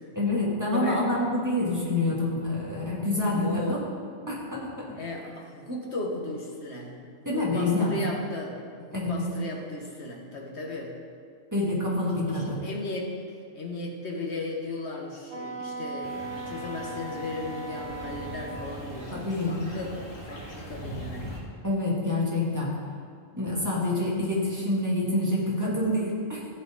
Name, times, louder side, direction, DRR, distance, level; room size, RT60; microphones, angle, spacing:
voice 1, 0.1-3.8 4.3-4.9 7.2-8.0 8.9-9.3 11.5-12.6 19.1-19.6 21.6-22.7 23.3-26.4, left 2 dB, 15° right, -6 dB, 2.4 m, -27 dB
voice 2, 0.7-1.1 3.3-3.8 4.9-10.9 12.3-13.1 13.6-21.4, left 2 dB, 55° left, 0 dB, 1.7 m, -36 dB
Wind instrument woodwind instrument, 15.3-18.7, right 2 dB, 50° right, 1.5 m, -37 dB
sound 1, 16.0-21.4, equal, 20° left, 1.9 m, -41 dB
15.0 x 7.7 x 3.9 m, 2.2 s
omnidirectional pair, 1.3 m